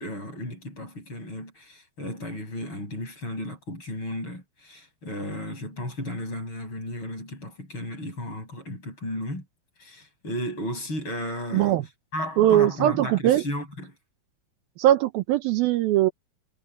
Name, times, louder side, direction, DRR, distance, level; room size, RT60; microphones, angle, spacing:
voice 1, 0.0-9.5 9.8-11.8 12.1-14.0, left 1 dB, 30° left, 6.8 m, -34 dB
voice 2, 12.4-13.4 14.8-16.1, right 13 dB, 80° right, 2.5 m, -20 dB
omnidirectional pair, 4.5 m